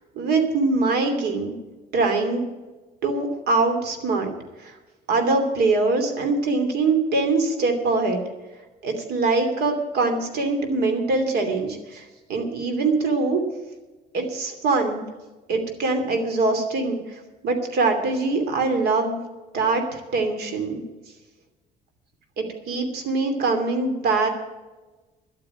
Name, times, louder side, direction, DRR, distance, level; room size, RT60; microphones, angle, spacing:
voice 1, 0.1-1.5 1.9-2.4 3.0-4.3 4.6-4.7 5.1-8.2 8.8-13.4 14.1-15.0 15.5-19.2 19.5-20.8 22.4-24.3, right 3 dB, 70° right, 6 dB, 2.7 m, -23 dB
11.5 x 8.8 x 8.7 m, 1.2 s
cardioid pair, 110°, 17 cm